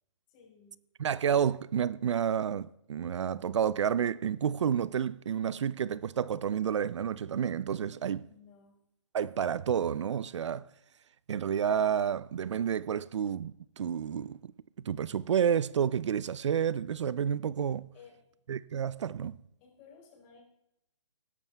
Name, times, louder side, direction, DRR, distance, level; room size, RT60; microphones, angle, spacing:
voice 1, 0.3-0.8 7.9-8.8 17.9-18.2 19.6-20.4, left 6 dB, 25° left, 4.6 m, -57 dB
voice 2, 1.0-8.2 9.1-10.6 11.3-14.5 14.8-17.9 18.5-19.4, right 8 dB, 70° right, 0.5 m, -30 dB
20.0 x 11.0 x 3.4 m
hypercardioid pair, 160°, 16 cm